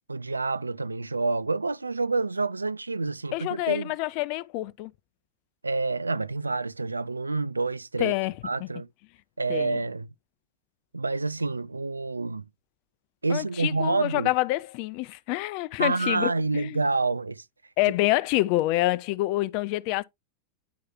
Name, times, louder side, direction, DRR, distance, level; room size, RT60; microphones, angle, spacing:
voice 1, 0.1-3.9 5.6-8.1 8.4-8.9 9.4-10.1 10.9-12.4 13.2-14.3 15.8-17.4, right 3 dB, 80° right, 0.3 m, -28 dB
voice 2, 3.3-4.9 8.0-8.7 9.5-9.8 13.3-16.8 17.8-20.0, left 18 dB, 45° left, 0.4 m, -27 dB
10.5 x 4.6 x 2.9 m
figure-of-eight pair, 90°, 0 cm